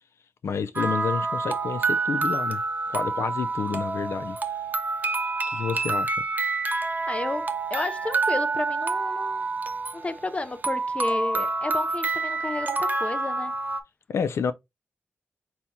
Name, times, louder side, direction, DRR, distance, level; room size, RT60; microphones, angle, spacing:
voice 1, 0.4-2.6 2.9-4.4 5.5-6.2 14.1-14.5, left 6 dB, 90° left, 0.4 m, -29 dB
sound 1, 0.8-13.8, right 3 dB, 40° right, 0.6 m, -28 dB
voice 2, 7.1-9.5 9.9-13.5, left 2 dB, 25° left, 0.5 m, -32 dB
4.2 x 2.8 x 3.5 m
wide cardioid pair, 80°, 5 cm